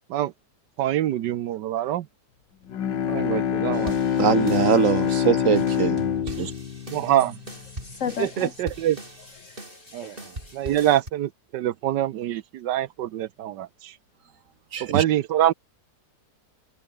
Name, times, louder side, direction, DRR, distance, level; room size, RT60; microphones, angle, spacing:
voice 1, 0.8-2.1 3.1-4.1 6.9-7.4 8.2-9.0 9.9-10.2 10.5-13.9 14.9-15.5, right 12 dB, 75° right, 1.4 m, -25 dB
Bowed string instrument, 2.7-7.8, left 9 dB, 80° left, 2.0 m, -25 dB
sound 1, 3.7-11.1, right 1 dB, 30° right, 6.2 m, -40 dB
voice 2, 4.2-6.0 6.4-6.5 14.7-15.0, right 7 dB, 50° right, 1.3 m, -22 dB
voice 3, 7.8-8.5 9.4-10.9, left 8 dB, 60° left, 0.9 m, -35 dB
omnidirectional pair, 1.9 m